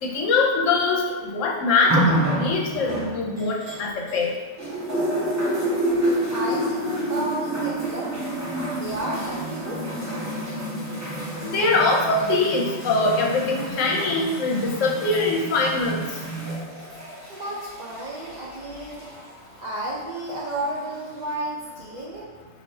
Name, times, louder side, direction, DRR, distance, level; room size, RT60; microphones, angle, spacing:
voice 1, 0.0-4.3 11.5-16.0, left 3 dB, 70° left, 0 dB, 0.9 m, -23 dB
sound 1, 1.9-4.3 4.6-19.3 20.2-20.3, right 1 dB, 15° right, 0.7 m, -28 dB
voice 2, 5.5-8.2 8.7-9.9 17.3-19.1 19.6-22.3, right 1 dB, 75° right, -5 dB, 0.4 m, -32 dB
3.3 x 2.6 x 4.2 m, 1.3 s
omnidirectional pair, 1.4 m